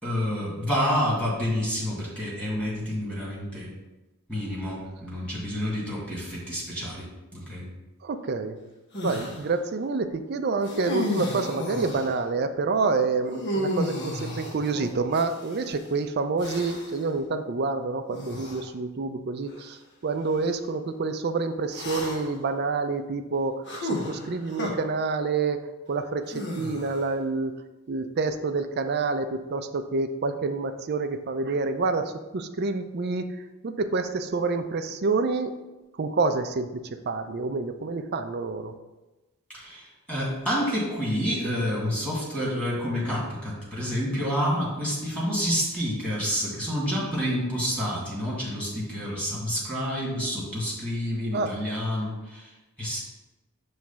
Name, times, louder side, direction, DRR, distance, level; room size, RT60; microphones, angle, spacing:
voice 1, 0.0-3.7 4.3-7.7 39.5-52.5 52.8-53.0, equal, 5° left, -7 dB, 2.1 m, -29 dB
voice 2, 8.0-8.6 9.0-25.6 25.9-27.5 27.9-33.3 33.6-35.5 36.0-38.7 51.3-51.6, right 3 dB, 45° right, 8 dB, 0.4 m, -28 dB
sound 1, 8.9-9.4 10.6-12.2 13.3-15.6 16.4-17.0 18.1-18.6 19.5-19.6 21.7-22.4 23.7-24.7 26.3-27.1, left 1 dB, 50° left, 1.1 m, -32 dB
6.0 x 3.2 x 5.8 m, 1.1 s
head